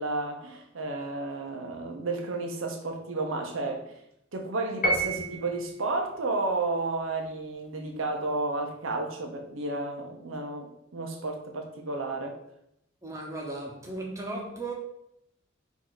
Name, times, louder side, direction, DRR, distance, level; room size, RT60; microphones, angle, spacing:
voice 1, 0.0-3.9 4.3-12.4, right 2 dB, 85° right, 0.8 m, -32 dB
Piano, 4.8-5.7, right 1 dB, 45° left, 0.8 m, -28 dB
voice 2, 13.0-14.7, right 2 dB, 15° right, 0.9 m, -36 dB
4.7 x 2.7 x 3.9 m
head